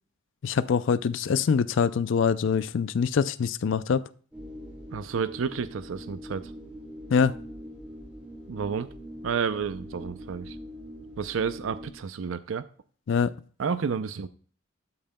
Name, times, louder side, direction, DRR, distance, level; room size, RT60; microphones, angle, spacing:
voice 1, 0.4-4.1 7.1-7.4 13.1-13.3, left 6 dB, 70° left, 0.4 m, -24 dB
sound 1, 4.3-11.9, equal, 5° right, 2.7 m, -43 dB
voice 2, 4.9-6.5 8.5-8.9 9.2-10.6 11.2-12.6 13.6-14.3, right 6 dB, 90° right, 0.5 m, -30 dB
13.0 x 8.7 x 2.2 m
head